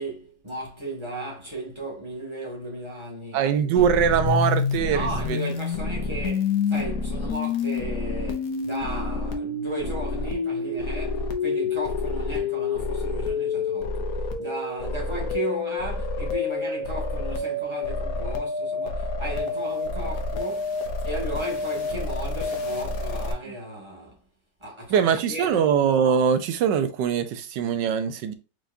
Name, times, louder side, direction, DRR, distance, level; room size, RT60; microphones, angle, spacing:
voice 1, 0.0-3.8 4.8-24.2 24.6-25.7, right 1 dB, 15° right, 1.8 m, -35 dB
voice 2, 3.3-5.4 24.9-28.3, right 7 dB, 85° right, 1.4 m, -22 dB
sound 1, 3.8-23.3, left 4 dB, 60° left, 1.2 m, -28 dB
4.6 x 4.1 x 2.6 m
omnidirectional pair, 1.9 m